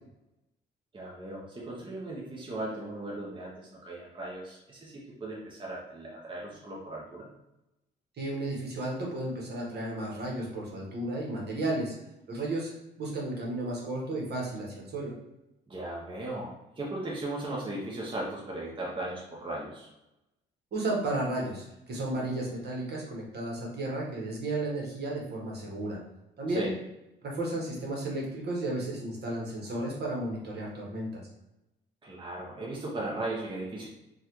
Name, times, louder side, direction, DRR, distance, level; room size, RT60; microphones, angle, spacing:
voice 1, 0.9-7.3 15.7-19.9 26.5-26.7 32.0-33.9, right 2 dB, 25° right, -4 dB, 0.7 m, -37 dB
voice 2, 8.2-11.9 12.3-12.7 13.0-15.1 20.7-26.0 26.4-26.7 27.2-31.2, right 2 dB, 55° right, -2 dB, 1.1 m, -33 dB
3.2 x 2.3 x 2.9 m, 0.93 s
cardioid pair, 90°, 20 cm